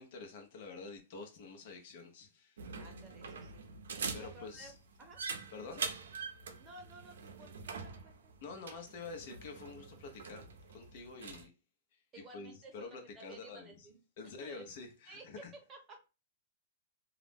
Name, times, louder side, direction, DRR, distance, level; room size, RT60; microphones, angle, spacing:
voice 1, 0.0-2.6 4.1-4.8 5.5-5.8 8.4-11.5 12.3-13.9 14.2-15.5, left 4 dB, 55° left, 0.7 m, -48 dB
sound 1, 2.6-11.5, right 5 dB, 90° right, 0.5 m, -44 dB
voice 2, 2.8-3.7 4.2-4.7 5.0-5.2 5.6-5.8 6.6-8.3 12.1-14.0 14.4-14.7 15.1-15.4 15.7-16.0, right 2 dB, 20° right, 0.7 m, -54 dB
2.4 x 2.0 x 3.3 m
hypercardioid pair, 150°, 0 cm